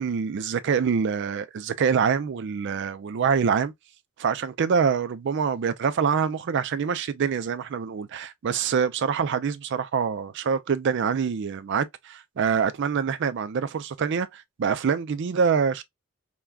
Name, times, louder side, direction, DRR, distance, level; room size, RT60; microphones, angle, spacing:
voice 1, 0.0-3.7 4.2-15.8, right 6 dB, 55° right, 0.4 m, -25 dB
3.3 x 2.2 x 2.2 m
head